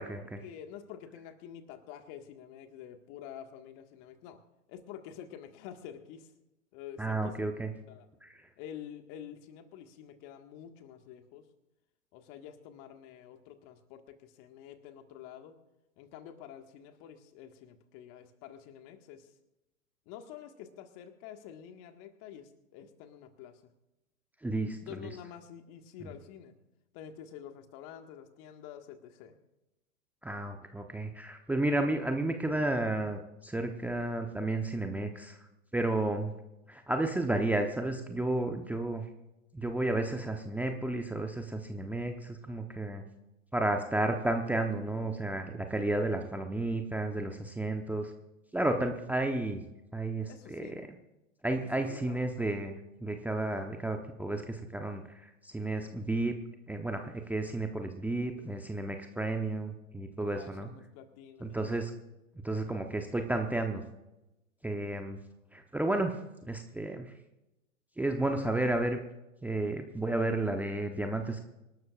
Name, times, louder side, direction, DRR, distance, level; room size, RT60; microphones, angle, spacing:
voice 1, 0.0-4.4 4.7-6.3 6.7-7.5 7.9-8.1 8.6-11.5 12.1-15.6 16.0-19.3 20.0-23.6 24.8-26.5 26.9-29.4 50.3-50.8 51.6-52.5 60.2-61.7, left 9 dB, 40° left, 7 dB, 1.7 m, -48 dB
voice 2, 7.0-7.7 8.2-8.5 24.4-25.1 26.0-26.1 30.2-35.4 35.7-36.3 36.7-39.0 39.5-43.0 43.5-48.1 48.5-49.6 49.9-50.8 51.4-56.3 56.7-60.7 61.4-61.9 62.4-63.8 64.6-65.2 65.5-66.1 66.4-67.1 68.0-69.0 69.4-71.4, right 2 dB, 5° right, 4 dB, 0.9 m, -32 dB
26.0 x 12.5 x 2.5 m, 0.96 s
figure-of-eight pair, 100°, 39 cm